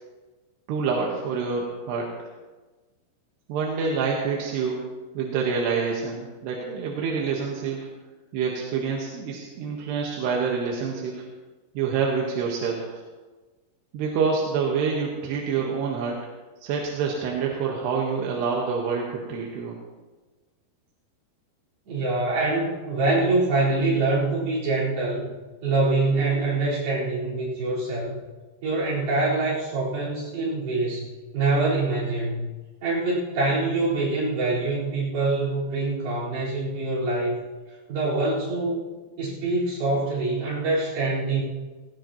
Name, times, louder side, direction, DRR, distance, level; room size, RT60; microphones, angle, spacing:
voice 1, 0.7-2.3 3.5-4.8 5.2-7.9 8.3-11.2 11.8-13.0 13.9-16.2 16.6-19.7, right 5 dB, 90° right, -2 dB, 3.5 m, -27 dB
voice 2, 21.9-25.3 25.6-28.2 28.6-31.1 31.3-32.5 32.8-37.4 37.9-38.8 39.2-41.4, right 2 dB, 65° right, -8 dB, 6.3 m, -25 dB
18.0 x 17.0 x 3.0 m, 1.3 s
omnidirectional pair, 4.7 m